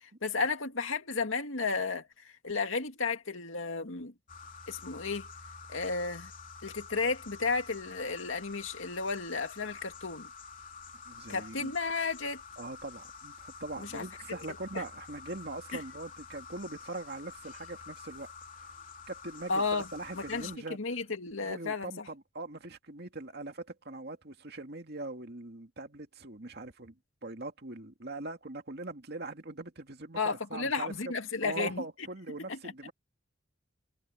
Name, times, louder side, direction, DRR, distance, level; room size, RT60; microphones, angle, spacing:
voice 1, 0.0-4.1 4.7-5.3 5.7-6.3 6.6-10.3 11.3-12.4 13.8-14.0 14.7-14.8 15.7-15.8 19.5-19.9 20.1-22.1 30.2-31.8 32.4-32.6, left 4 dB, 85° left, 2.2 m, -33 dB
sound 1, 4.3-20.6, left 5 dB, 45° left, 3.2 m, -48 dB
voice 2, 11.1-11.7 12.6-18.3 19.1-20.8 21.4-27.0 27.2-30.9 31.4-32.9, right 2 dB, 55° right, 2.3 m, -41 dB
head